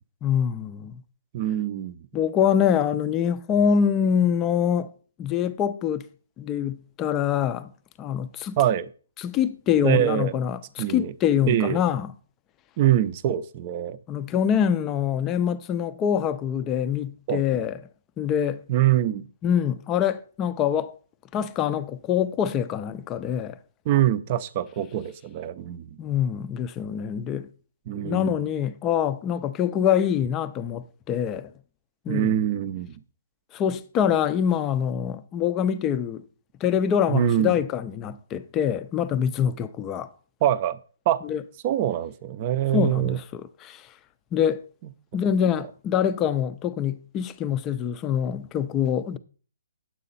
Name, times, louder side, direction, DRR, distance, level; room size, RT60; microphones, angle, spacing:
voice 1, 0.2-1.0 2.1-4.9 5.2-6.1 6.4-7.7 8.0-8.6 9.2-12.1 14.1-17.8 18.2-18.6 19.4-21.0 21.3-23.6 26.0-27.5 27.9-31.5 32.1-32.3 33.5-36.2 36.6-40.1 41.3-41.4 42.7-43.9 44.3-44.6 45.1-49.2, left 8 dB, 15° left, 0.5 m, -25 dB
voice 2, 1.3-2.0 8.6-8.9 9.8-10.4 10.8-11.1 11.5-11.8 12.8-14.0 17.3-17.7 18.7-19.3 23.9-26.0 27.9-28.3 32.1-32.9 37.1-37.6 40.4-40.8 41.1-41.2 41.6-43.2, right 12 dB, 30° right, 0.6 m, -24 dB
9.9 x 7.7 x 4.1 m
hypercardioid pair, 160°, 0 cm